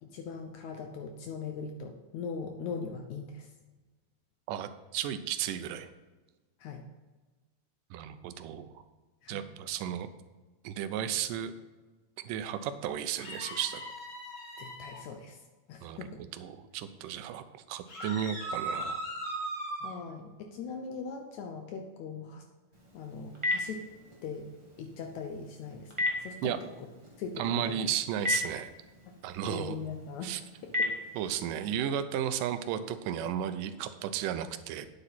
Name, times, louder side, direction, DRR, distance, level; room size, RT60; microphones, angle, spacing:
voice 1, 0.0-3.5 6.6-6.8 9.2-9.4 14.6-15.4 15.7-16.2 19.8-22.5 22.9-23.8 24.2-24.5 24.8-26.9 27.2-27.8 29.4-30.3 30.6-30.9, left 5 dB, 70° left, 4 dB, 1.9 m, -40 dB
voice 2, 4.5-5.9 7.9-8.7 9.3-10.1 10.6-11.5 12.2-13.8 15.8-16.1 16.3-19.0 26.4-26.6 27.4-28.7 29.2-29.8 30.2-30.4 31.2-34.9, right 10 dB, 80° right, 10 dB, 2.3 m, -34 dB
sound 1, 13.2-15.0 17.9-19.9, right 1 dB, 90° left, 5.5 m, -38 dB
Telephone, 22.7-31.6, left 2 dB, 30° right, 0.5 m, -37 dB
9.4 x 8.0 x 4.2 m, 1.2 s
omnidirectional pair, 3.9 m